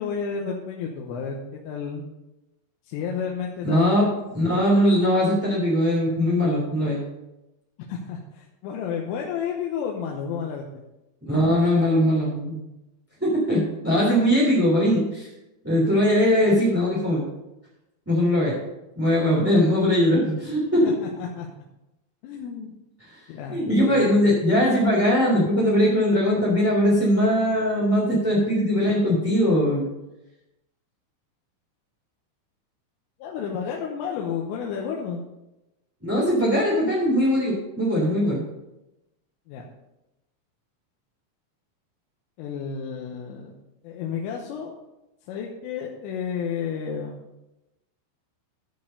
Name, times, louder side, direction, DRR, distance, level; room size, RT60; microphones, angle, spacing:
voice 1, 0.0-2.0 2.9-4.1 7.8-10.8 20.8-21.5 22.2-22.7 23.3-24.2 33.2-35.2 39.5-39.6 42.4-43.5 43.8-44.7 45.3-47.2, left 6 dB, 85° left, 0 dB, 3.5 m, -31 dB
voice 2, 3.6-7.0 11.3-12.6 13.2-15.3 15.6-17.2 18.0-18.5 18.9-20.9 23.0-23.2 23.5-29.8 36.0-38.4, equal, 5° right, -6 dB, 1.7 m, -21 dB
14.0 x 5.3 x 5.2 m, 0.96 s
omnidirectional pair, 5.8 m